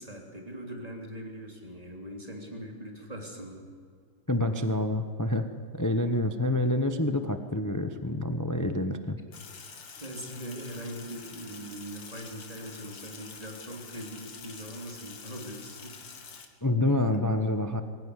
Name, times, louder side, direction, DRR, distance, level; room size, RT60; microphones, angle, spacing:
voice 1, 0.0-3.6 10.0-16.0, equal, 15° right, 0 dB, 3.4 m, -41 dB
voice 2, 4.3-5.5 5.7-9.2 16.6-17.8, left 1 dB, 20° left, 8 dB, 0.5 m, -27 dB
Sink (filling or washing), 9.3-16.5, left 5 dB, 65° left, 2.5 m, -46 dB
23.5 x 16.0 x 9.9 m, 2.1 s
omnidirectional pair, 2.2 m